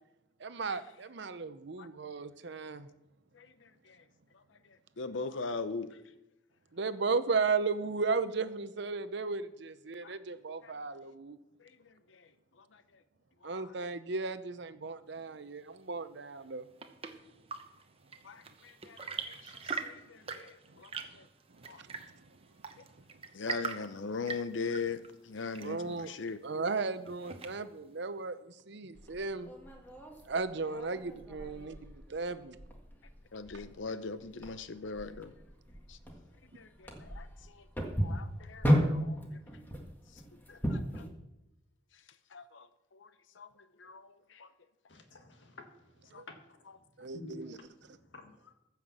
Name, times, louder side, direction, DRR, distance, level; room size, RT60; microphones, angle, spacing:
voice 1, 0.4-2.9 6.7-11.4 13.4-16.6 25.6-26.1 26.4-28.4 28.7-29.5 30.3-32.6 46.1-46.2 47.0-47.5, right 4 dB, 65° right, 0.8 m, -35 dB
voice 2, 3.3-4.0 5.0-6.0 10.0-10.2 10.6-10.7 11.6-11.7 12.1-12.2 13.4-13.7 18.2-21.2 21.7-21.8 23.3-26.4 33.3-35.3 35.9-36.0 36.6-37.3 37.5-37.6 38.0-39.2 40.5-41.0 42.3-43.1 43.4-43.5 43.8-44.5 46.1-46.2, left 4 dB, 85° left, 0.7 m, -41 dB
Chirp tweet / Engine / Tap, 16.4-27.9, right 5 dB, 30° right, 0.9 m, -43 dB
sound 1, 28.9-41.1, equal, 10° left, 1.8 m, -35 dB
voice 3, 44.9-46.6 47.0-48.5, left 1 dB, 70° left, 1.8 m, -51 dB
14.5 x 5.9 x 7.2 m
head